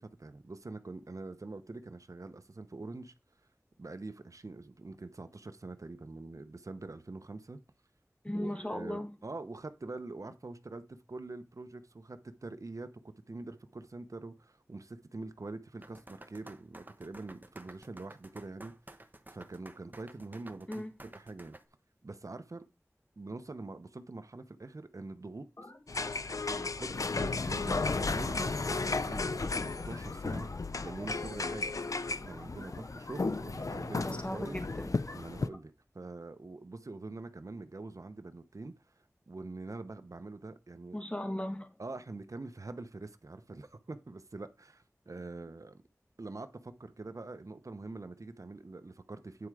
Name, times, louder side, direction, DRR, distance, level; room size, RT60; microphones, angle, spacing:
voice 1, 0.0-3.1 3.8-7.6 8.3-12.9 13.3-18.7 19.3-20.8 21.1-21.6 22.0-22.6 23.2-25.7 26.4-29.6 29.8-30.5 30.8-31.8 32.1-34.6 35.1-38.7 39.3-41.0 41.8-45.8 46.2-49.5, right 3 dB, 70° right, 0.9 m, -44 dB
voice 2, 8.2-9.1 20.7-20.9 34.0-34.9 40.9-41.7, left 1 dB, 20° left, 1.4 m, -37 dB
sound 1, 15.8-21.6, right 1 dB, 35° right, 1.0 m, -52 dB
sound 2, 25.6-35.6, left 2 dB, 50° left, 1.4 m, -50 dB
sound 3, 25.9-35.5, left 3 dB, 75° left, 0.5 m, -34 dB
9.7 x 4.7 x 4.9 m
wide cardioid pair, 50°, 6 cm